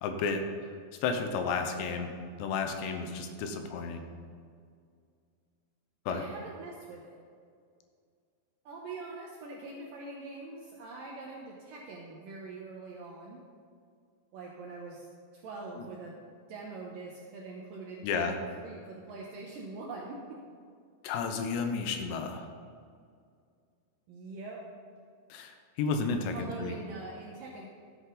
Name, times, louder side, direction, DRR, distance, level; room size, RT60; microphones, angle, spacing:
voice 1, 0.0-0.4 1.0-2.1 2.4-4.0 6.1-6.2 18.0-18.4 21.0-22.5 25.3-26.8, left 5 dB, 80° left, 6 dB, 3.0 m, -32 dB
voice 2, 6.1-7.2 8.7-13.4 14.3-15.1 15.3-16.1 16.5-20.4 24.1-24.6 26.3-27.7, right 3 dB, 75° right, -2 dB, 2.1 m, -43 dB
13.5 x 8.3 x 3.9 m, 2.2 s
omnidirectional pair, 5.2 m